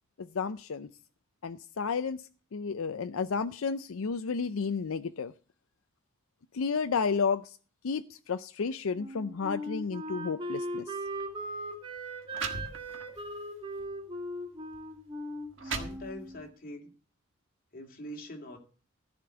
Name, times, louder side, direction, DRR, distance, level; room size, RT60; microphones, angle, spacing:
voice 1, 0.3-0.9 1.4-2.2 2.5-5.3 6.5-7.6 7.8-10.9, left 5 dB, 80° left, 0.5 m, -32 dB
Wind instrument woodwind instrument, 8.9-16.5, right 1 dB, 25° right, 2.2 m, -39 dB
sound 1, 11.1-11.3 12.0-12.1 12.3-13.2 13.8-14.0 14.7-14.8 15.3-16.5, right 4 dB, 60° right, 1.7 m, -38 dB
voice 2, 15.6-16.9 17.7-18.6, left 1 dB, 45° left, 2.6 m, -43 dB
14.5 x 5.2 x 7.9 m
head